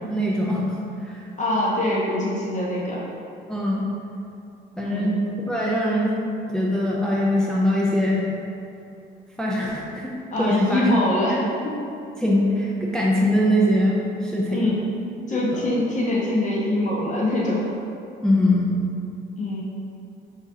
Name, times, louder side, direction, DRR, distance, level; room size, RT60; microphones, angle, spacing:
voice 1, 0.1-1.2 3.5-3.8 4.8-5.1 5.5-6.2 6.5-8.3 9.4-10.1 10.4-11.0 11.3-11.4 12.2-14.8 15.3-15.7 18.2-18.8, left 1 dB, 5° left, -4 dB, 0.4 m, -22 dB
voice 2, 1.4-3.0 4.8-5.1 10.3-11.8 14.5-14.8 15.2-17.6 19.4-19.6, left 1 dB, 40° left, -5 dB, 0.9 m, -24 dB
4.8 x 2.5 x 2.7 m, 2.5 s
cardioid pair, 90°, 20 cm